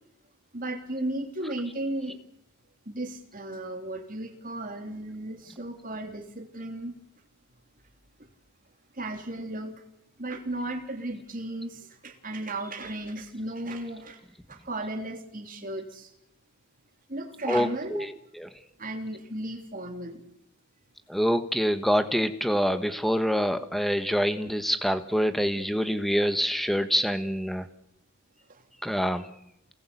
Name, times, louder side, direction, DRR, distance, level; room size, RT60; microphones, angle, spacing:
voice 1, 0.5-2.2 2.9-6.9 8.9-9.7 10.2-14.2 14.5-16.1 17.1-18.1 18.8-20.2, right 1 dB, 40° right, 5 dB, 3.2 m, -35 dB
voice 2, 17.5-18.5 21.1-27.7 28.8-29.3, equal, ahead, 10 dB, 1.4 m, -26 dB
29.0 x 19.5 x 8.5 m, 0.82 s
head